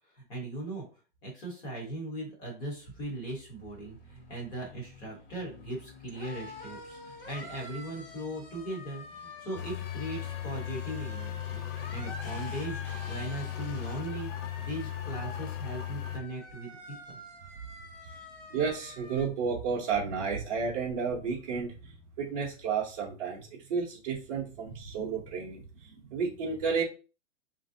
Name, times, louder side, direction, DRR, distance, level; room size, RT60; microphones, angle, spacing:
voice 1, 0.1-0.9 1.2-16.8 17.1-17.2, right 1 dB, 10° left, -1 dB, 0.6 m, -39 dB
sound 1, 2.8-19.3, left 2 dB, 50° left, 1.0 m, -47 dB
sound 2, 9.6-16.2, left 12 dB, 75° left, 0.6 m, -37 dB
voice 2, 18.5-26.8, right 5 dB, 30° right, -6 dB, 0.7 m, -32 dB
3.1 x 2.6 x 2.6 m, 0.34 s
hypercardioid pair, 165°, 37 cm